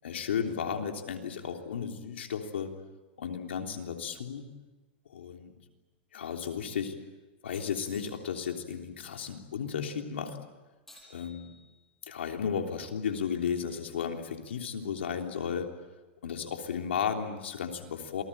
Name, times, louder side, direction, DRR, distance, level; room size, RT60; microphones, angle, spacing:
voice 1, 0.0-2.7 3.2-4.5 5.1-5.5 6.1-6.9 7.4-10.4 11.1-11.5 12.0-15.7 16.2-18.2, left 7 dB, 85° left, 3 dB, 3.4 m, -34 dB
sound 1, 7.5-8.5 10.9-12.0, left 2 dB, 5° left, 7.8 m, -56 dB
27.5 x 20.0 x 8.8 m, 1.2 s
hypercardioid pair, 125°, 6 cm